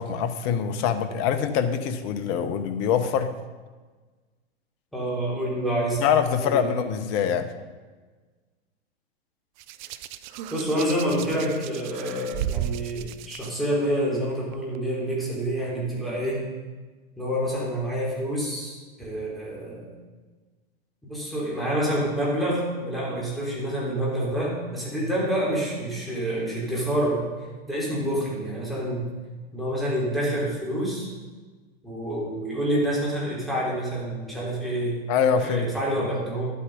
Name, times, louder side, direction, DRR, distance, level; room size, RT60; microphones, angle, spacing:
voice 1, 0.0-3.3 6.0-7.5 35.1-35.7, left 7 dB, 45° left, 9 dB, 1.1 m, -24 dB
voice 2, 4.9-6.0 6.4-6.7 10.5-16.4 17.2-19.9 21.0-27.2 27.7-29.1 29.5-31.1 31.8-35.0 35.4-36.5, right 1 dB, ahead, -6 dB, 4.3 m, -27 dB
Hands, 9.6-13.5 14.5-14.8, right 11 dB, 50° right, 0.6 m, -34 dB
11.5 x 8.4 x 5.2 m, 1.3 s
hypercardioid pair, 110°, 32 cm